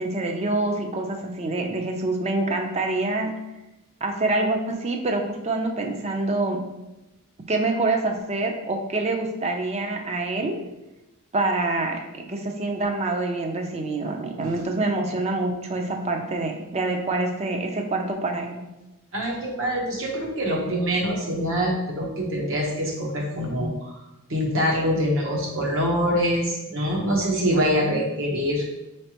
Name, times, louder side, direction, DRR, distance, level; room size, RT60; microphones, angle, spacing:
voice 1, 0.0-3.4 4.0-6.6 7.5-10.6 11.3-18.7 27.9-28.0, right 2 dB, 30° right, 3 dB, 0.5 m, -26 dB
voice 2, 19.1-24.0 24.3-28.6, equal, 65° right, -1 dB, 1.0 m, -24 dB
4.8 x 3.2 x 2.9 m, 0.97 s
head